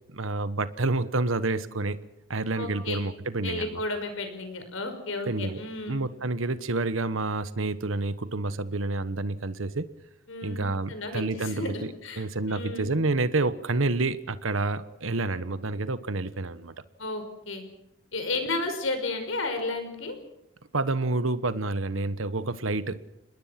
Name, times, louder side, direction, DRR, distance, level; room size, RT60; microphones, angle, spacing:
voice 1, 0.1-2.0 2.3-3.8 5.3-5.6 5.9-9.9 10.4-16.7 20.7-23.0, right 2 dB, 85° right, 13 dB, 1.2 m, -29 dB
voice 2, 2.6-3.0 3.4-6.1 10.3-10.6 10.9-12.9 17.0-17.6 18.1-20.2, left 2 dB, 85° left, 7 dB, 5.5 m, -33 dB
29.0 x 21.0 x 6.0 m, 0.84 s
head